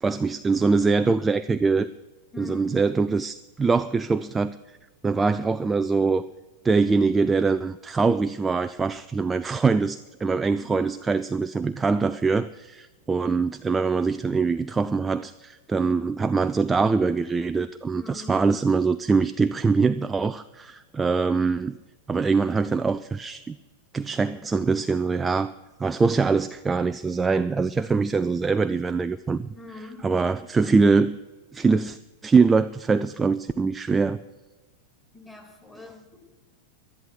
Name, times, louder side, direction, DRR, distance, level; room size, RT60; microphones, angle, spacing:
voice 1, 0.0-1.9 2.4-4.6 5.0-6.3 6.6-21.8 22.1-23.6 23.9-25.5 25.8-29.5 30.0-31.2 31.5-32.0 32.2-34.2, right 4 dB, 15° right, 12 dB, 0.3 m, -23 dB
voice 2, 2.3-2.8 10.6-11.1 17.9-18.5 29.5-30.2 35.1-36.2, left 3 dB, 10° left, 0 dB, 3.1 m, -43 dB
12.0 x 11.0 x 6.4 m, 1.2 s
figure-of-eight pair, 90°, 0 cm